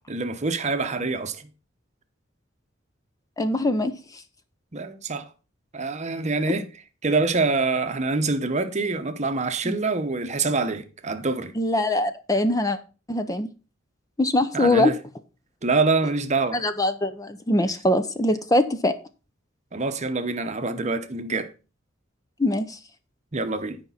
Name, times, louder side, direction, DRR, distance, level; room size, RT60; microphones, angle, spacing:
voice 1, 0.0-1.5 4.7-5.3 5.7-6.7 7.0-11.5 14.5-14.9 15.6-16.6 19.7-21.5 23.3-23.8, right 3 dB, 35° right, 0.9 m, -25 dB
voice 2, 3.4-3.9 9.6-9.7 11.6-12.8 13.1-13.5 14.2-14.9 16.5-18.9 22.4-22.8, left 1 dB, 20° left, 0.6 m, -22 dB
9.7 x 5.1 x 5.6 m
head